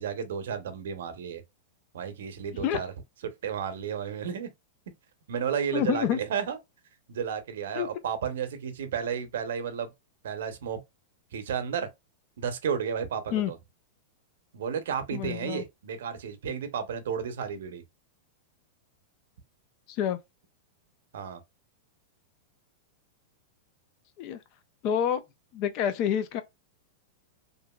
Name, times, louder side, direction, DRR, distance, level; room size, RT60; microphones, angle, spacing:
voice 1, 0.0-1.4 1.9-2.9 3.2-4.5 5.3-6.6 7.1-9.9 10.2-10.8 11.3-11.9 12.4-13.6 14.5-17.8 21.1-21.4, right 7 dB, 75° right, 0.7 m, -32 dB
voice 2, 5.7-6.2 7.7-7.9 13.3-13.5 15.1-15.6 19.9-20.2 24.2-24.4 24.8-25.2 25.5-26.4, left 9 dB, 30° left, 0.3 m, -28 dB
2.8 x 2.5 x 2.2 m
supercardioid pair, 175°, 0 cm